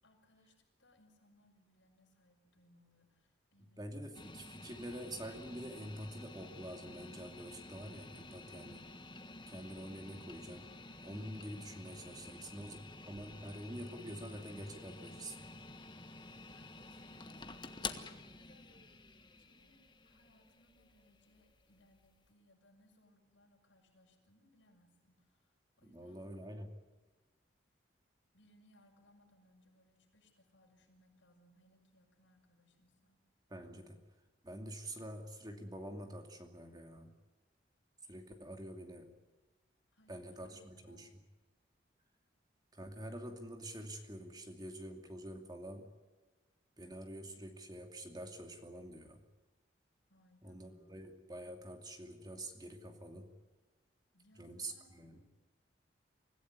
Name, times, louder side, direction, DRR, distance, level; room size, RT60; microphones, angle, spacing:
voice 1, 0.0-4.2 16.5-26.3 28.3-33.2 39.9-41.1 50.1-51.0 54.1-55.2, left 1 dB, 80° left, 1 dB, 7.1 m, -69 dB
voice 2, 3.8-8.9 9.5-10.7 11.0-12.8 13.1-15.4 25.8-26.7 33.5-34.0 34.4-37.1 38.0-39.1 40.1-41.2 42.7-45.9 46.8-49.2 50.4-53.3 54.4-55.2, right 1 dB, 20° right, 4 dB, 2.6 m, -47 dB
sound 1, 4.1-22.3, left 3 dB, 25° left, 1.4 m, -50 dB
25.5 x 16.0 x 9.7 m, 1.2 s
head